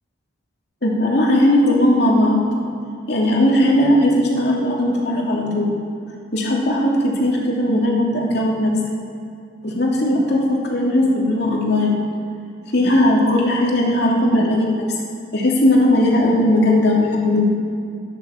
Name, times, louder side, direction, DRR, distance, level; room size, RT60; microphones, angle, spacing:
voice 1, 0.8-2.4 3.1-5.7 6.3-8.7 9.6-12.0 12.7-14.8 15.3-17.5, left 1 dB, 55° left, -3 dB, 2.9 m, -17 dB
12.5 x 10.5 x 7.1 m, 2.5 s
head